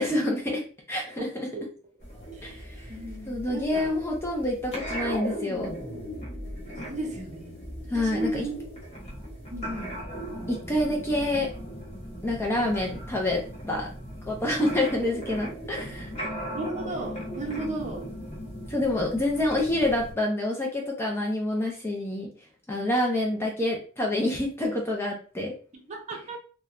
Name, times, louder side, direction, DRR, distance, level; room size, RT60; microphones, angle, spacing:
voice 1, 0.0-1.5 2.4-2.9 3.3-5.7 7.9-8.5 10.5-11.5 12.2-13.9 14.3-16.1 18.7-22.3 22.7-25.5, left 1 dB, 10° left, 0 dB, 0.4 m, -27 dB
sound 1, 2.0-20.1, equal, 30° left, 0.9 m, -38 dB
voice 2, 2.9-3.9 6.9-7.7 7.9-8.5 9.5-9.9 16.5-18.1 25.9-26.4, right 2 dB, 35° right, 1 dB, 0.6 m, -35 dB
3.0 x 2.1 x 2.4 m, 0.38 s
head